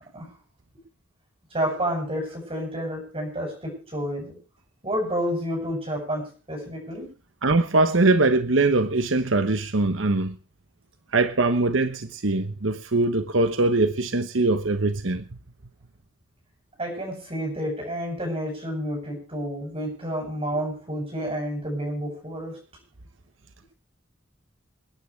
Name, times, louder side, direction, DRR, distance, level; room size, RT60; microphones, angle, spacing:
voice 1, 1.5-4.4 4.8-7.1 16.8-22.6, equal, 30° right, 8.0 m, -30 dB
voice 2, 7.4-10.4 11.1-15.2, right 2 dB, 85° right, 1.1 m, -22 dB
28.0 x 9.7 x 3.3 m
head